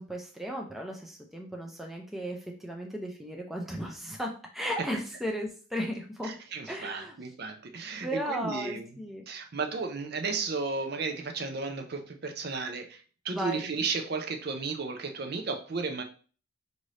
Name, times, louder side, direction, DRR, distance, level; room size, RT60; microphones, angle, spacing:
voice 1, 0.0-6.3 6.7-7.1 8.0-9.2 13.3-13.7, equal, ahead, 0 dB, 0.5 m, -35 dB
voice 2, 6.2-16.0, right 4 dB, 50° right, 4 dB, 0.5 m, -34 dB
5.0 x 2.7 x 3.2 m, 0.40 s
head